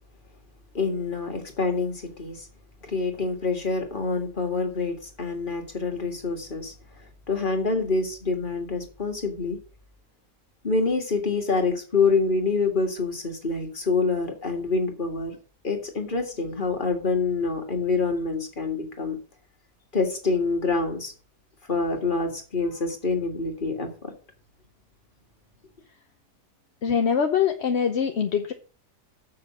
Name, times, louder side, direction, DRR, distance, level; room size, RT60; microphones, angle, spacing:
voice 1, 0.7-2.4 2.8-6.7 7.3-9.6 10.6-15.4 15.6-19.2 19.9-21.1 21.7-24.1, left 4 dB, 30° left, 4 dB, 2.0 m, -26 dB
voice 2, 26.8-28.5, left 7 dB, 50° left, 5 dB, 0.9 m, -23 dB
7.2 x 5.9 x 7.4 m, 0.37 s
omnidirectional pair, 1.8 m